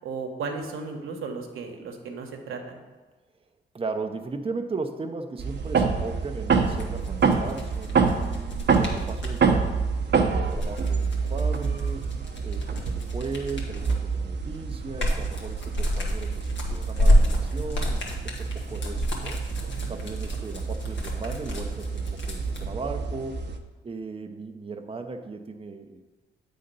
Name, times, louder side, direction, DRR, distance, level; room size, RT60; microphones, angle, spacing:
voice 1, 0.0-2.8 11.2-11.4, right 4 dB, 75° right, 3 dB, 1.1 m, -35 dB
voice 2, 3.7-8.2 8.7-9.8 10.1-12.1 12.4-19.4 19.9-23.4 23.8-26.0, right 4 dB, 25° right, 5 dB, 0.7 m, -37 dB
sound 1, 5.4-23.6, right 5 dB, 55° right, 0.9 m, -27 dB
sound 2, 6.6-9.4 10.3-14.1 14.5-22.6, equal, 60° left, 1.7 m, -28 dB
8.6 x 3.9 x 5.4 m, 1.3 s
supercardioid pair, 50°, 21 cm